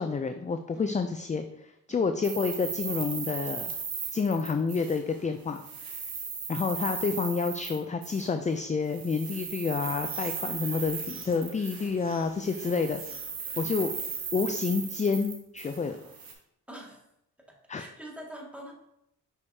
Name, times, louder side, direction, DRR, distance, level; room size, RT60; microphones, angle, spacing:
voice 1, 0.0-1.4 1.9-3.8 4.1-5.9 6.5-13.0 13.6-13.9 14.3-16.0 17.7-17.8, left 4 dB, 20° left, 8 dB, 0.4 m, -29 dB
voice 2, 1.9-2.2 13.6-13.8 16.7-17.0 17.5-18.7, equal, 5° right, -2 dB, 2.1 m, -45 dB
sound 1, 2.2-5.2 5.5-8.3 8.9-12.1 12.4-16.3, right 5 dB, 70° right, 1.4 m, -37 dB
sound 2, 9.8-15.3, right 3 dB, 35° right, 1.0 m, -52 dB
6.3 x 5.3 x 2.8 m, 0.80 s
cardioid pair, 55°, 36 cm